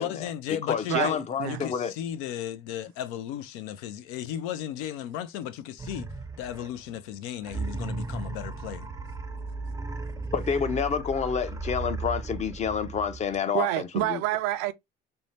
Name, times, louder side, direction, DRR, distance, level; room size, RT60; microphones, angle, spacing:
voice 1, 0.0-6.1 6.4-8.9, left 10 dB, 90° left, 0.4 m, -35 dB
voice 2, 0.7-1.9 10.3-14.2, left 7 dB, 35° left, 0.5 m, -28 dB
sound 1, 5.8-6.9 7.4-13.4, right 3 dB, 15° right, 0.5 m, -35 dB
voice 3, 13.5-14.7, right 15 dB, 90° right, 0.4 m, -27 dB
2.6 x 2.1 x 3.1 m
cardioid pair, 95°, 21 cm